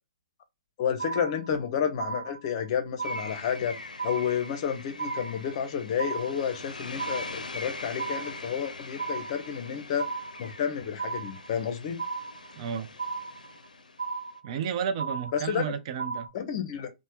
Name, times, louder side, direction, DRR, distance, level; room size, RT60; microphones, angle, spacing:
voice 1, 0.8-3.7 4.0-10.1 10.4-12.0 15.3-15.7 16.3-16.9, left 8 dB, 45° left, 0.7 m, -30 dB
sound 1, 1.0-1.7 2.0-2.7 3.0-3.7 4.0-4.7 5.0-5.7 6.0-6.7 7.0-7.7 8.0-8.7 9.0-9.7 10.0-10.7 11.0-11.7 12.0-12.7 13.0-13.7 14.0-14.7 15.0-15.7 16.0-16.3, right 4 dB, 85° right, 0.8 m, -35 dB
sound 2, 3.0-14.4, left 3 dB, 85° left, 0.5 m, -43 dB
voice 2, 12.6-12.9 14.4-16.3, right 7 dB, 45° right, 0.5 m, -32 dB
3.2 x 2.1 x 2.9 m
figure-of-eight pair, 120°, 4 cm